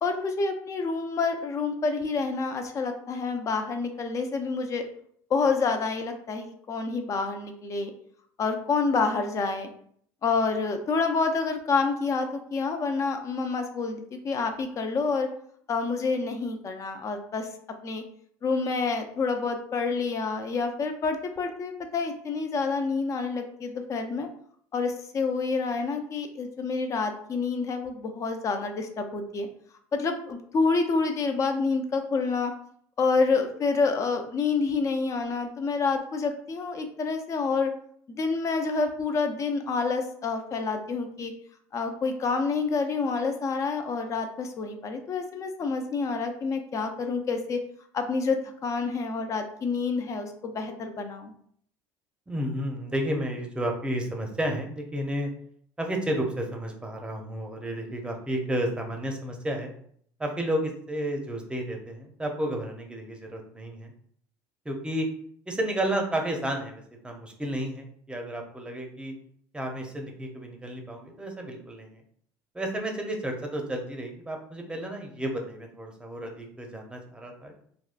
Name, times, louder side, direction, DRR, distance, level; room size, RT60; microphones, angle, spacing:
voice 1, 0.0-4.8 5.3-7.9 8.4-9.7 10.2-15.3 15.7-17.5 17.8-18.0 18.4-24.3 24.7-29.5 29.9-32.5 33.0-37.7 38.1-41.3 41.7-47.6 47.9-51.3, left 4 dB, 35° left, 6 dB, 0.5 m, -28 dB
voice 2, 52.3-55.3 55.8-59.7 60.2-63.9 64.6-65.1 65.5-69.1 69.5-72.0 72.5-77.6, right 1 dB, 10° right, 2 dB, 0.7 m, -32 dB
3.5 x 2.2 x 2.5 m, 0.63 s
supercardioid pair, 95°, 9 cm